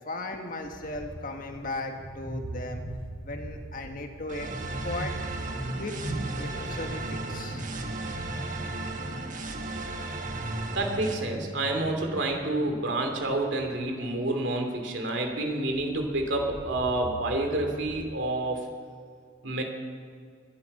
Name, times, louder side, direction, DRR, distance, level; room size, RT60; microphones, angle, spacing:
voice 1, 0.0-2.8 3.2-4.5 4.8-5.1 5.5-7.6, left 2 dB, 45° left, 4 dB, 1.5 m, -37 dB
sound 1, 0.6-1.6 1.9-14.0 15.2-15.3 15.5-18.2, right 1 dB, 5° left, 3.5 m, -39 dB
sound 2, 4.3-11.1, right 2 dB, 40° right, 1.4 m, -36 dB
voice 2, 10.7-18.6 19.4-19.6, right 2 dB, 65° right, 3 dB, 2.8 m, -28 dB
20.0 x 12.5 x 5.4 m, 2.1 s
head